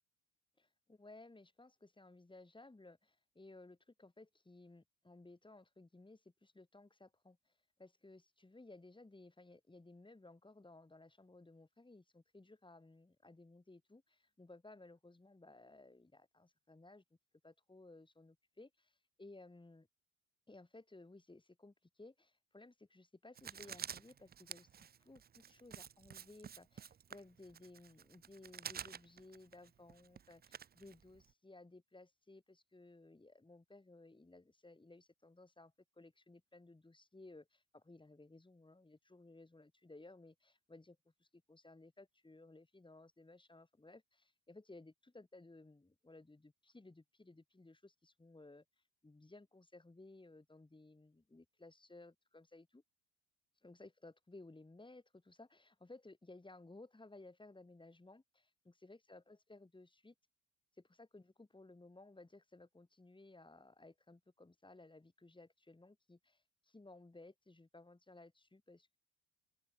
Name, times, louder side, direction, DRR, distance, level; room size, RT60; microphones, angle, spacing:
voice 1, 0.6-7.5 7.8-17.0 17.4-19.9 20.5-48.6 49.0-52.8 53.6-60.1 61.0-69.0, left 2 dB, 10° left, 6.9 m, -59 dB
Writing, 23.4-31.3, right 8 dB, 25° right, 0.7 m, -50 dB
open air
figure-of-eight pair, 60°, 40 cm